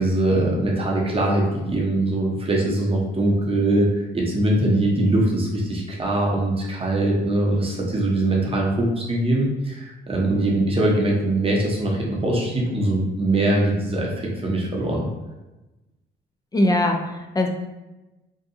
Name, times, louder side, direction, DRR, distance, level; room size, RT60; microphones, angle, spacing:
voice 1, 0.0-15.1, right 1 dB, 30° right, -2 dB, 0.7 m, -22 dB
voice 2, 16.5-17.5, left 1 dB, 20° left, 3 dB, 0.3 m, -21 dB
2.7 x 2.2 x 2.6 m, 1.0 s
cardioid pair, 90°, 20 cm